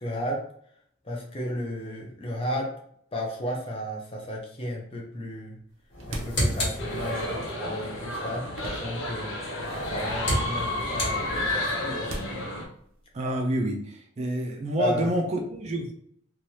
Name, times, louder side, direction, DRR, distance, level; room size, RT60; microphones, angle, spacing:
voice 1, 0.0-0.4 1.0-2.7 3.1-5.6 6.1-9.4 9.7-12.3 14.8-15.1, equal, 30° left, 0 dB, 0.6 m, -33 dB
sound 1, 5.7-9.8 10.0-13.3, right 1 dB, 85° right, 0.6 m, -43 dB
sound 2, 5.9-7.5 9.5-11.8, equal, 60° left, 1.5 m, -31 dB
sound 3, 6.8-12.6, left 1 dB, 90° left, 0.7 m, -31 dB
voice 2, 13.1-15.9, right 1 dB, 35° right, 2 dB, 0.4 m, -28 dB
3.2 x 2.3 x 2.7 m, 0.66 s
head